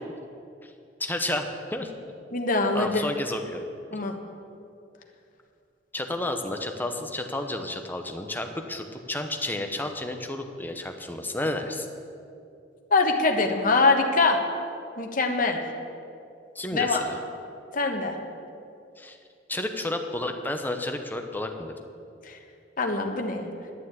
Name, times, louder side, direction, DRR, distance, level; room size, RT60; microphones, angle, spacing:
voice 1, 1.0-1.9 2.7-3.6 5.9-11.9 16.5-17.2 19.0-19.2 19.5-21.7, left 1 dB, 10° left, 5 dB, 0.9 m, -31 dB
voice 2, 2.3-3.0 3.9-4.1 12.9-14.4 15.0-15.6 16.7-17.0 17.7-18.2 22.3-22.4 22.8-23.5, left 3 dB, 50° left, 3 dB, 1.2 m, -23 dB
11.0 x 7.1 x 9.5 m, 2.5 s
head